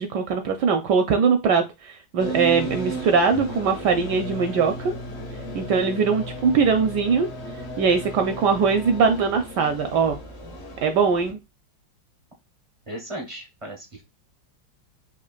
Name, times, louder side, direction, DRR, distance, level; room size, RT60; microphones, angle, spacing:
voice 1, 0.0-4.9 5.5-7.3 7.8-10.2 10.8-11.4, right 5 dB, 75° right, 7 dB, 1.0 m, -21 dB
sound 1, 2.2-11.3, right 1 dB, 50° left, 0.8 m, -35 dB
voice 2, 12.9-14.0, right 1 dB, 60° right, 0 dB, 0.3 m, -36 dB
4.4 x 2.6 x 2.4 m, 0.24 s
omnidirectional pair, 2.2 m